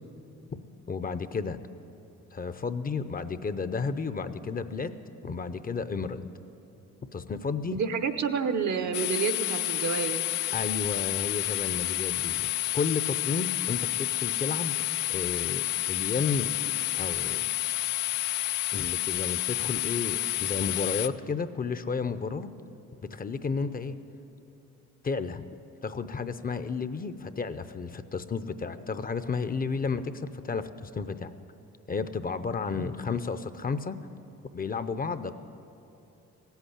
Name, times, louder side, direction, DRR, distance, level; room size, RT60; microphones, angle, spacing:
voice 1, 0.9-1.6 2.3-4.9 5.2-6.3 7.1-7.8 10.5-14.8 15.1-16.5 16.9-17.5 18.7-22.5 23.1-24.0 25.0-25.5 25.8-31.3 31.9-34.0 34.5-35.4, left 5 dB, 30° left, 12 dB, 0.6 m, -32 dB
voice 2, 7.7-10.3, right 6 dB, 70° right, 8 dB, 0.9 m, -29 dB
sound 1, 8.9-21.1, left 13 dB, 85° left, 0.5 m, -30 dB
16.0 x 8.2 x 10.0 m, 2.8 s
cardioid pair, 90°, 30 cm